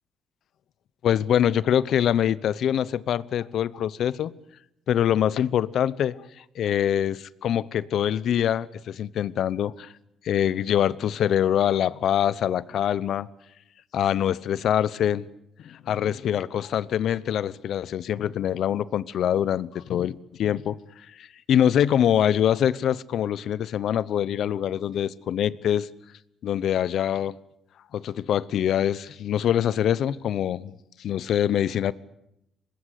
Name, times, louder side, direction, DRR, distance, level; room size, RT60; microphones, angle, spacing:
voice 1, 1.0-4.3 4.9-9.9 10.2-13.3 13.9-15.2 15.6-20.8 21.2-25.9 26.4-27.4 27.9-30.7 31.0-31.9, left 10 dB, 70° left, 0.8 m, -24 dB
24.5 x 20.5 x 8.3 m
cardioid pair, 90°, 0 cm